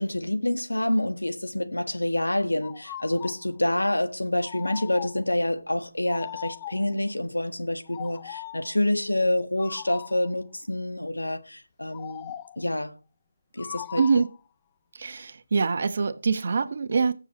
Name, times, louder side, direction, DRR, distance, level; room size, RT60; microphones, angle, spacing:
voice 1, 0.0-12.9 13.5-14.0, left 1 dB, 90° left, 1.5 m, -27 dB
sound 1, 2.6-3.4 4.4-5.3 6.1-7.0 7.9-8.7 9.6-10.3 11.9-12.6 13.6-14.4, left 13 dB, 20° left, 0.4 m, -40 dB
voice 2, 14.0-14.3 15.0-17.1, right 5 dB, 45° right, 1.1 m, -24 dB
19.5 x 7.2 x 3.1 m
figure-of-eight pair, 160°, 0 cm